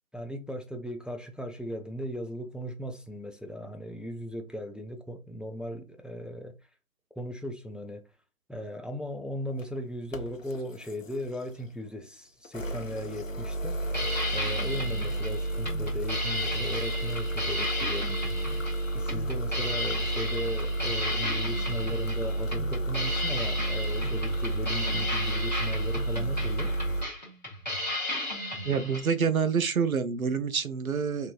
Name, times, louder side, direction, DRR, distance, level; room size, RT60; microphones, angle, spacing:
voice 1, 0.1-6.5 7.2-8.0 8.5-13.8 14.3-18.2 18.9-26.7, equal, ahead, 0.3 m, -37 dB
sound 1, 9.5-9.6 10.1-11.7 12.4-27.0, right 2 dB, 65° left, 0.7 m, -31 dB
sound 2, 13.8-29.1, left 1 dB, 30° left, 1.0 m, -34 dB
voice 2, 28.6-31.3, right 6 dB, 80° right, 0.7 m, -27 dB
3.6 x 2.6 x 2.4 m
figure-of-eight pair, 175°, 42 cm